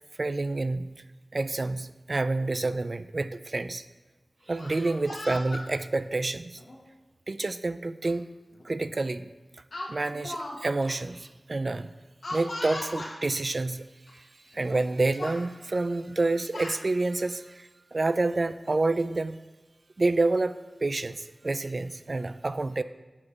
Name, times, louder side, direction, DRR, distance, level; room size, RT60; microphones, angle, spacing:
voice 1, 0.2-0.9 1.3-3.8 4.5-6.6 7.3-8.3 8.6-9.3 9.9-11.9 12.3-13.9 14.1-19.4 20.0-22.8, right 2 dB, 50° right, 13 dB, 0.3 m, -28 dB
Speech, 4.5-5.7 6.6-6.8 8.1-8.2 8.5-8.8 9.7-10.6 10.8-10.9 12.2-13.2 14.1-14.2 14.5-14.9 15.2-15.4 16.2-16.8, left 1 dB, 80° left, 1.5 m, -38 dB
7.3 x 4.8 x 5.9 m, 1.2 s
wide cardioid pair, 55°, 0 cm